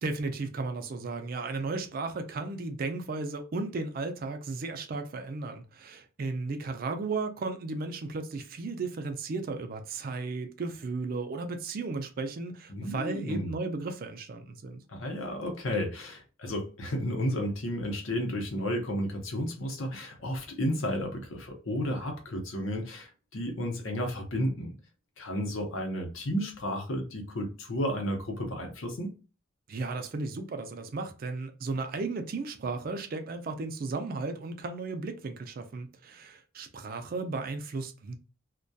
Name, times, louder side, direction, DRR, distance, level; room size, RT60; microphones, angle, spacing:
voice 1, 0.0-14.8 29.7-38.1, right 3 dB, 45° right, 0.3 m, -35 dB
voice 2, 12.7-13.5 14.9-24.7 25.2-29.1, equal, 75° left, 0.7 m, -32 dB
2.2 x 2.2 x 2.6 m
head